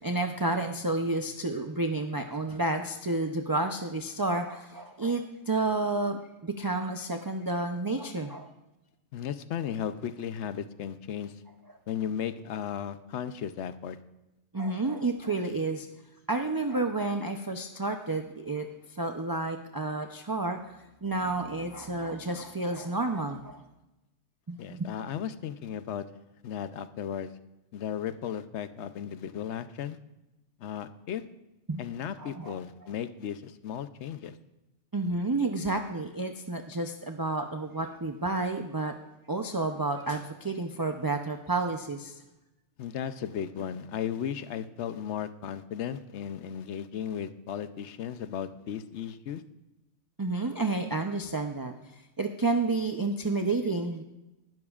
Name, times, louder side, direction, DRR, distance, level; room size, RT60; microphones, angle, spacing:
voice 1, 0.0-8.5 14.5-15.9 16.3-23.6 24.5-24.9 31.7-31.8 32.2-32.6 34.9-38.9 39.3-42.2 50.2-54.0, right 2 dB, 30° right, 5 dB, 0.4 m, -30 dB
voice 2, 9.1-11.3 11.9-14.0 24.6-26.0 26.4-27.3 27.7-30.0 30.6-31.2 31.8-34.4 42.8-49.4, left 9 dB, 70° left, 12 dB, 0.9 m, -35 dB
19.0 x 12.0 x 2.4 m, 0.98 s
omnidirectional pair, 1.3 m